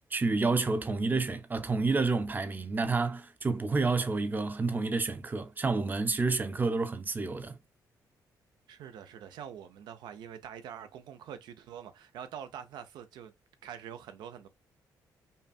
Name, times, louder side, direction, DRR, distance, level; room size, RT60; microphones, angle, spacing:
voice 1, 0.1-7.6, right 3 dB, 25° right, 0.6 m, -29 dB
voice 2, 8.7-13.3 13.6-14.5, right 9 dB, 85° right, 0.6 m, -45 dB
5.4 x 2.3 x 2.4 m
cardioid pair, 100°, 7 cm